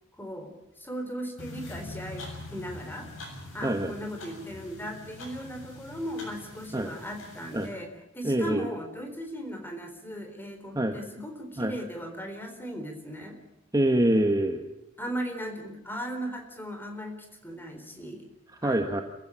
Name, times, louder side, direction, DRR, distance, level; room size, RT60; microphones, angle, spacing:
voice 1, 0.2-3.1 3.5-13.4 15.0-17.2 17.4-18.3 18.6-18.8, equal, 10° left, 5 dB, 4.0 m, -37 dB
sound 1, 1.4-7.7, left 2 dB, 80° left, 7.5 m, -44 dB
voice 2, 3.6-3.9 6.7-6.9 7.5-7.7 8.2-8.7 10.7-10.9 11.6-11.7 13.7-14.6 18.6-19.0, right 1 dB, 20° right, 5 dB, 1.3 m, -25 dB
27.5 x 15.5 x 8.7 m, 0.94 s
head